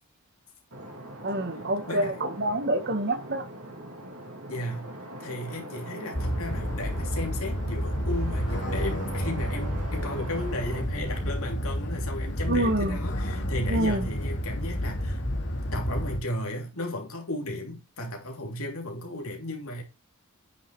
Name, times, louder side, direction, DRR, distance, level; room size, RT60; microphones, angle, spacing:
sound 1, 0.7-11.3, right 1 dB, 70° right, 2.7 m, -41 dB
voice 1, 1.2-3.5 12.5-13.0 13.7-14.1, right 1 dB, 50° right, 1.5 m, -27 dB
voice 2, 1.9-2.2 4.5-4.9 5.2-15.2 15.7-19.8, left 1 dB, 70° left, 3.1 m, -35 dB
sound 2, 6.1-16.2, equal, 55° left, 2.4 m, -30 dB
9.5 x 6.8 x 3.2 m
head